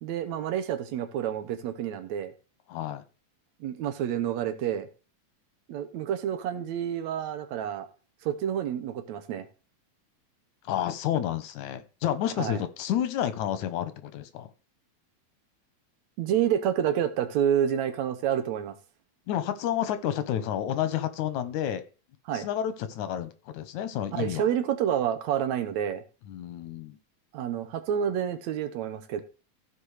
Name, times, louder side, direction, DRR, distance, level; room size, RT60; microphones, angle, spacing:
voice 1, 0.0-2.3 3.6-4.9 5.7-7.9 8.2-9.5 12.4-12.6 16.2-18.7 22.3-22.5 24.1-26.0 27.3-29.2, right 9 dB, 75° right, 2.3 m, -28 dB
voice 2, 2.7-3.0 10.6-14.5 19.3-21.8 22.3-24.4 26.3-27.0, left 10 dB, 90° left, 2.4 m, -30 dB
15.0 x 5.2 x 4.8 m
omnidirectional pair, 3.3 m